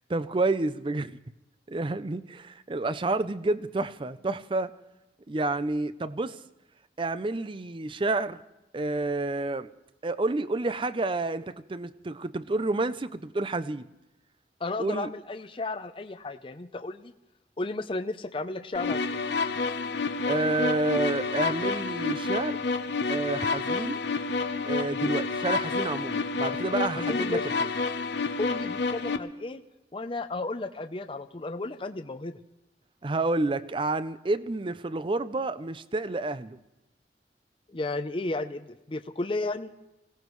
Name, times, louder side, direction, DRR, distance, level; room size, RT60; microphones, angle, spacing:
voice 1, 0.1-1.2 1.7-4.7 5.3-6.4 7.0-8.4 8.7-9.7 10.0-13.9 14.8-15.1 20.3-22.6 23.1-24.0 24.6-27.4 33.0-36.6, right 2 dB, 30° right, 0.5 m, -29 dB
voice 2, 14.6-17.1 17.6-19.2 27.0-27.4 28.4-29.6 29.9-32.3 37.7-39.7, left 2 dB, 30° left, 0.6 m, -33 dB
sound 1, 18.7-29.2, left 4 dB, 75° left, 0.8 m, -29 dB
25.5 x 17.0 x 3.1 m
head